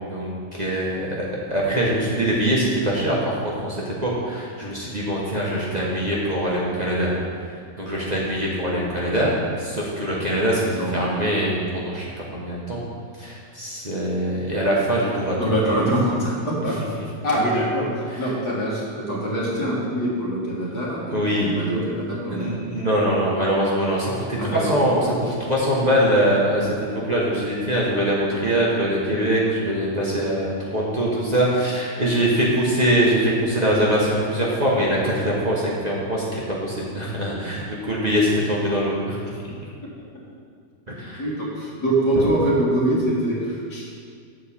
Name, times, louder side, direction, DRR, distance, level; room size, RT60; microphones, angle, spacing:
voice 1, 0.0-7.1 7.8-9.3 9.6-12.1 12.3-12.8 13.2-15.4 15.6-15.8 21.1-21.5 22.3-39.5 40.9-41.2, right 1 dB, 30° right, -6 dB, 0.9 m, -23 dB
voice 2, 15.4-16.8 17.2-22.5 24.4-24.7 41.2-43.8, right 1 dB, 75° left, -6 dB, 2.5 m, -24 dB
7.4 x 4.6 x 7.0 m, 2.2 s
omnidirectional pair, 1.7 m